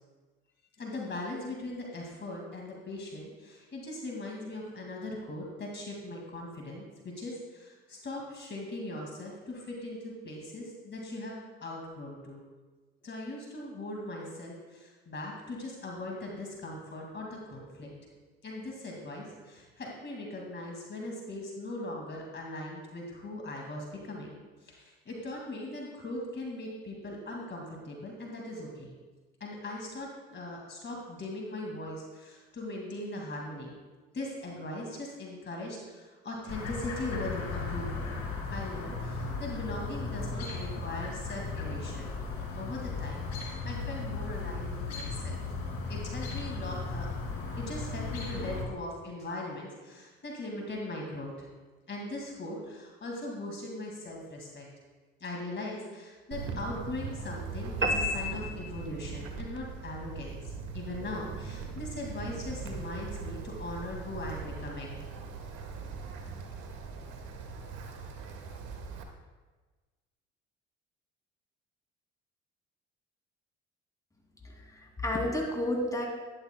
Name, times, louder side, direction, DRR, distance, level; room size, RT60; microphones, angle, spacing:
voice 1, 0.8-12.4 13.0-17.9 18.4-28.9 29.4-33.8 34.1-38.1 38.5-42.1 42.6-45.4 45.9-47.1 47.6-51.5 51.9-54.7 55.2-60.4 60.7-65.1 65.4-65.8, left 2 dB, 35° left, -1 dB, 2.2 m, -40 dB
Chirp tweet, 36.5-48.6, left 3 dB, 60° left, 2.4 m, -36 dB
Wind, 56.3-69.0, right 4 dB, 75° right, 1.4 m, -40 dB
sound 1, 57.8-59.3, left 1 dB, 40° right, 1.1 m, -31 dB
voice 2, 74.4-76.1, left 1 dB, 10° left, 0 dB, 2.5 m, -31 dB
11.5 x 11.5 x 2.2 m, 1.3 s
hypercardioid pair, 65°, 29 cm